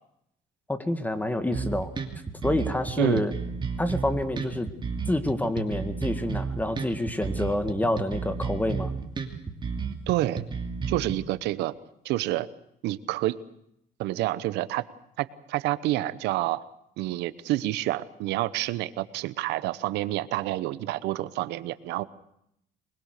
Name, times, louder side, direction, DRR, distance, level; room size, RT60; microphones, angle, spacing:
voice 1, 0.7-1.9 2.4-3.3 3.8-4.7 5.1-8.9, left 1 dB, 10° left, 9 dB, 2.0 m, -27 dB
sound 1, 1.5-11.1, right 5 dB, 30° right, 2.8 m, -32 dB
voice 2, 3.0-3.3 10.1-10.4 10.9-11.7 12.0-12.5 12.8-13.4 14.0-14.9 15.2-16.6 17.0-22.0, right 16 dB, 85° right, 16 dB, 0.9 m, -28 dB
24.0 x 21.5 x 6.7 m, 0.76 s
cardioid pair, 110°, 17 cm